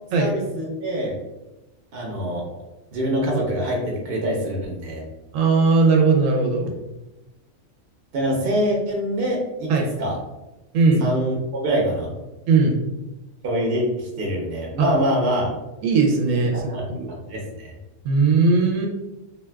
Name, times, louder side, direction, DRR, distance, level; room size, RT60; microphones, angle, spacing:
voice 1, 0.2-1.1 1.9-2.4 2.9-5.0 8.1-9.7 10.0-10.2 11.0-12.1 13.4-15.5 16.3-16.8 17.1-17.7, equal, 55° right, -2 dB, 0.8 m, -25 dB
voice 2, 5.3-6.7 9.7-9.9 10.7-11.1 12.5-12.8 14.8-14.9 15.8-17.1 18.0-18.9, right 4 dB, 90° right, 0 dB, 1.0 m, -18 dB
2.6 x 2.3 x 3.3 m, 1.0 s
omnidirectional pair, 1.3 m